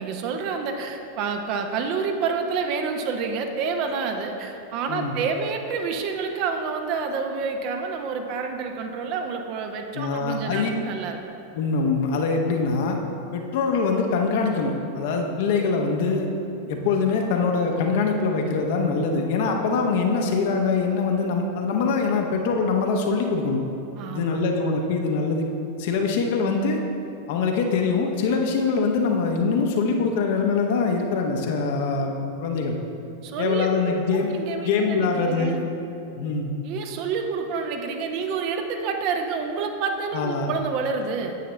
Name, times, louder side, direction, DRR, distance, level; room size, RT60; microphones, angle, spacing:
voice 1, 0.0-11.2 24.0-24.3 33.2-33.7 34.3-35.6 36.6-41.4, right 5 dB, 40° right, 4 dB, 0.7 m, -28 dB
voice 2, 9.9-10.7 11.5-13.0 13.3-16.3 16.7-23.6 24.1-25.5 25.8-26.8 27.3-32.8 33.4-34.4 34.6-35.6 36.1-36.5 40.1-40.5, left 4 dB, 50° left, 3 dB, 0.9 m, -23 dB
9.4 x 7.8 x 3.3 m, 2.7 s
figure-of-eight pair, 90°, 0 cm